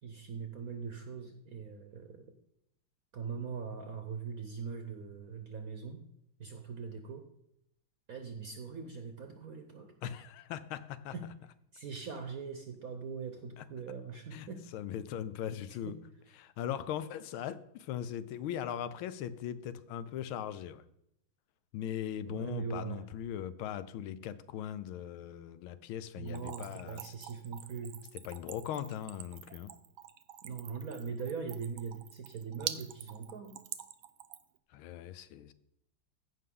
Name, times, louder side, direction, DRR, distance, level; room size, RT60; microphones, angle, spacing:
voice 1, 0.0-2.3 3.1-6.0 6.4-7.3 8.1-9.9 11.1-11.2 11.7-14.7 15.8-15.9 22.3-23.1 26.1-28.0 30.4-33.6, right 5 dB, 60° right, 5 dB, 1.0 m, -41 dB
voice 2, 10.0-11.1 14.3-14.5 14.7-16.0 16.3-20.8 21.7-27.1 28.2-29.7 34.7-35.5, left 10 dB, 85° left, 14 dB, 1.5 m, -39 dB
Splash splatter / Trickle dribble, 26.3-34.6, right 12 dB, 85° right, 1.5 m, -45 dB
15.5 x 5.5 x 3.7 m, 0.78 s
omnidirectional pair, 2.2 m